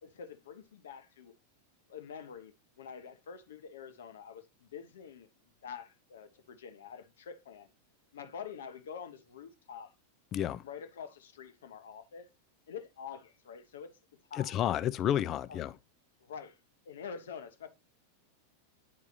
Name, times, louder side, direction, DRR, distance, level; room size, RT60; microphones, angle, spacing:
voice 1, 0.0-1.3 1.9-5.3 5.6-7.7 8.1-9.9 10.6-12.3 12.7-13.9 14.3-14.6 15.5-15.6 16.2-16.6 16.8-17.7, left 7 dB, 60° left, 1.0 m, -46 dB
voice 2, 10.3-10.6 14.4-15.7, left 11 dB, 30° left, 0.4 m, -31 dB
9.6 x 4.7 x 2.5 m
figure-of-eight pair, 90°, 0 cm